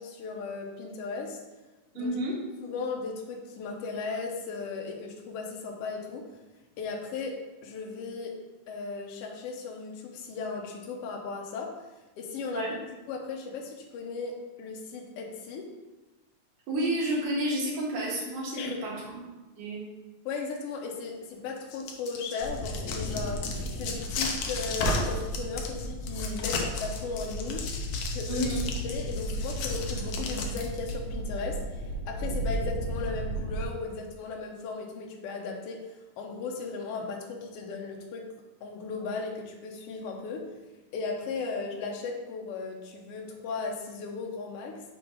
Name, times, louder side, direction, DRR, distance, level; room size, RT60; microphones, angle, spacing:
voice 1, 0.0-1.4 1.9-2.1 2.6-6.3 6.8-8.3 8.7-11.7 12.2-12.7 13.1-15.7 18.6-18.8 20.2-27.7 28.1-28.5 28.8-35.8 36.2-38.2 38.6-40.4 40.9-44.8, left 4 dB, 90° left, 0 dB, 1.3 m, -36 dB
voice 2, 2.0-2.3 12.5-12.7 16.7-19.2 19.6-19.8 28.3-28.6, right 1 dB, 75° right, -4 dB, 3.0 m, -30 dB
sound 1, 21.6-30.9, left 3 dB, 75° left, 1.8 m, -34 dB
sound 2, 22.4-33.7, equal, 45° left, 2.4 m, -34 dB
6.5 x 3.5 x 5.1 m, 1.1 s
omnidirectional pair, 3.8 m